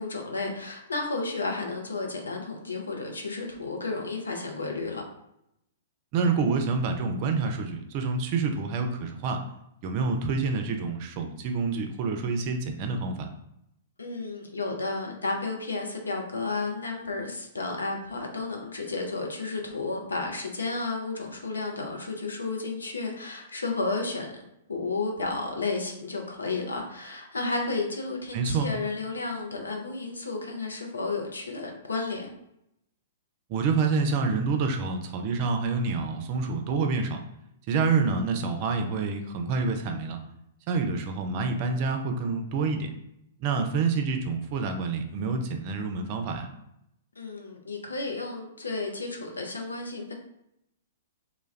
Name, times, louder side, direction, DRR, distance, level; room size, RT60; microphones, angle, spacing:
voice 1, 0.0-5.0 14.0-24.3 24.7-32.3 47.2-50.1, left 3 dB, 80° left, 2 dB, 0.6 m, -32 dB
voice 2, 6.1-9.4 9.8-13.3 28.3-28.7 33.5-37.2 37.7-40.2 40.7-42.9 43.4-46.5, right 4 dB, 45° right, 5 dB, 0.4 m, -27 dB
2.3 x 2.2 x 3.2 m, 0.80 s
figure-of-eight pair, 110°, 0 cm